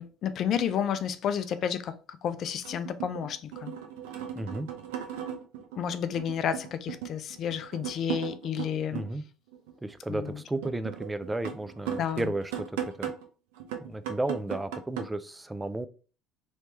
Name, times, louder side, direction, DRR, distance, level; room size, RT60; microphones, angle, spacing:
voice 1, 0.0-3.7 5.8-9.0 10.1-10.4 12.0-12.3, left 8 dB, 55° left, 0.4 m, -31 dB
sound 1, 1.4-1.5 2.6-9.1 9.5-13.3 13.6-15.0, right 9 dB, 75° right, 0.6 m, -37 dB
voice 2, 4.3-4.7 8.9-9.2 9.8-12.5 12.8-13.1 13.8-15.9, right 2 dB, 15° right, 0.4 m, -33 dB
3.2 x 3.1 x 2.9 m
hypercardioid pair, 65°, 0 cm